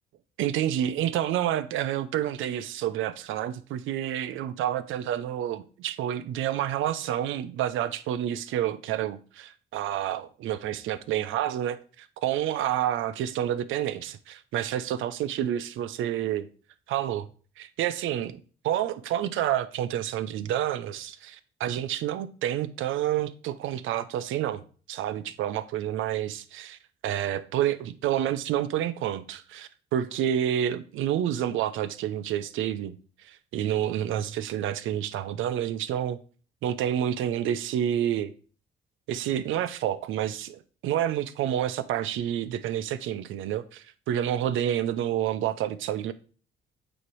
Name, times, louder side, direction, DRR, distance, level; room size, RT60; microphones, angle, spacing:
voice 1, 0.4-16.5 16.9-17.3 17.6-18.4 18.6-24.6 24.9-26.8 27.0-32.9 33.2-36.2 36.6-38.3 39.1-46.1, right 11 dB, 85° right, 0.6 m, -29 dB
8.7 x 3.3 x 4.6 m
cardioid pair, 90°, 20 cm